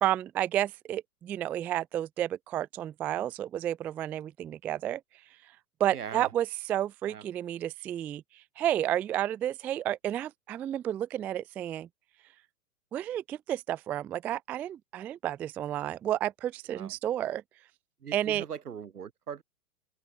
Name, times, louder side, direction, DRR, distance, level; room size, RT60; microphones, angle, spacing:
voice 1, 0.0-5.0 5.8-11.9 12.9-17.4 18.1-18.5, right 12 dB, 5° right, 0.3 m, -31 dB
voice 2, 5.9-6.3 7.1-7.2 16.7-16.9 18.0-19.4, right 7 dB, 75° right, 1.9 m, -40 dB
open air
figure-of-eight pair, 110°, 46 cm